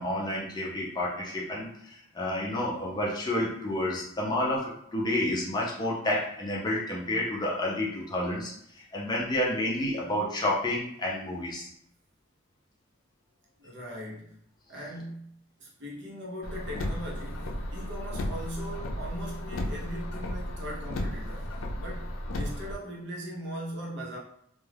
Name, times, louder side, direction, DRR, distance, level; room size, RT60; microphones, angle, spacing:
voice 1, 0.0-11.7, left 1 dB, 20° left, -4 dB, 0.5 m, -30 dB
voice 2, 13.6-14.4 14.7-24.2, equal, 55° right, -4 dB, 0.7 m, -40 dB
Car, 16.4-22.8, left 1 dB, 80° left, 0.4 m, -34 dB
2.3 x 2.2 x 3.3 m, 0.71 s
head